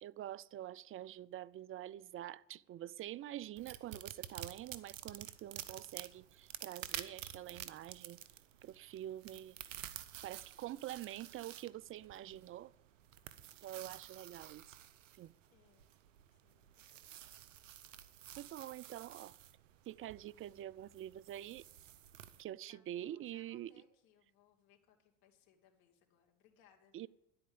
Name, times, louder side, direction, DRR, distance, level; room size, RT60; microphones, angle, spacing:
voice 1, 0.0-8.2 8.6-9.6 10.2-12.7 13.6-14.8 15.2-15.3 18.4-19.4 19.9-21.6 22.4-23.7 26.9-27.1, right 13 dB, 35° right, 0.5 m, -46 dB
sound 1, 3.6-22.4, right 11 dB, 85° right, 0.8 m, -51 dB
voice 2, 15.5-15.9 16.3-17.1 22.7-27.1, left 8 dB, 65° left, 2.6 m, -69 dB
11.0 x 8.7 x 9.5 m
hypercardioid pair, 70°, 37 cm